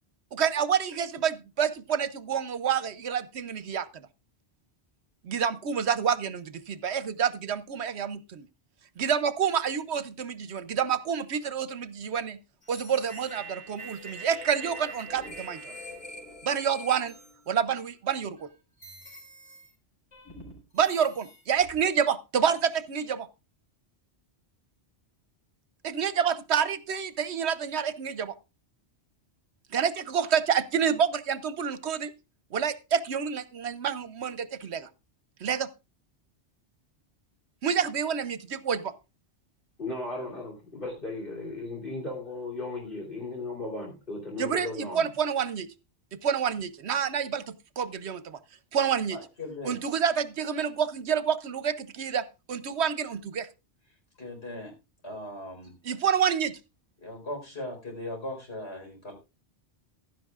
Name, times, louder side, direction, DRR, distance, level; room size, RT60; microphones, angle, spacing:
voice 1, 0.3-4.1 5.2-8.5 9.0-12.4 12.7-15.7 16.4-17.2 17.5-18.5 20.7-23.3 25.8-28.3 29.7-32.1 32.5-34.9 35.4-35.7 37.6-38.9 44.4-45.7 46.1-48.4 48.7-49.2 49.6-53.5 55.8-56.6, right 7 dB, 75° right, 1.0 m, -28 dB
sound 1, 12.6-17.8 18.4-18.5 18.8-19.7 20.1-21.8 22.5-22.8, right 1 dB, 30° left, 5.3 m, -44 dB
voice 2, 39.8-45.0, left 2 dB, 50° left, 3.3 m, -36 dB
voice 3, 49.1-49.8 54.2-54.7 55.0-55.8 57.0-59.1, left 1 dB, 70° left, 4.7 m, -38 dB
15.5 x 11.5 x 2.4 m
omnidirectional pair, 1.2 m